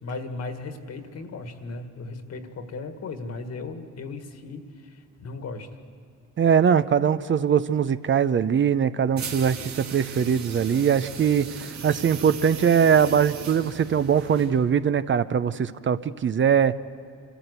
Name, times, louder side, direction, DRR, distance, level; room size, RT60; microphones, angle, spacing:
voice 1, 0.0-5.7, left 3 dB, 60° left, 7 dB, 1.9 m, -36 dB
voice 2, 6.4-16.8, right 7 dB, 40° right, 13 dB, 0.6 m, -21 dB
sound 1, 9.1-14.8, right 6 dB, 65° right, 1.8 m, -38 dB
25.5 x 14.0 x 8.2 m, 2.4 s
cardioid pair, 90°, 30 cm